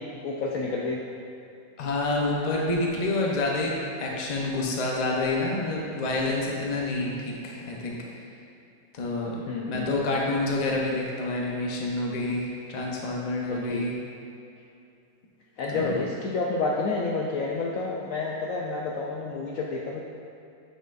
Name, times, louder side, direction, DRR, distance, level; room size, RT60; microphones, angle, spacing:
voice 1, 0.2-1.0 9.5-9.9 13.5-13.9 15.6-20.0, left 3 dB, 70° left, -2 dB, 0.8 m, -29 dB
voice 2, 1.8-8.0 8.9-13.9 15.7-16.0, left 2 dB, 35° left, -2 dB, 0.6 m, -28 dB
7.9 x 6.6 x 2.5 m, 2.7 s
omnidirectional pair, 1.8 m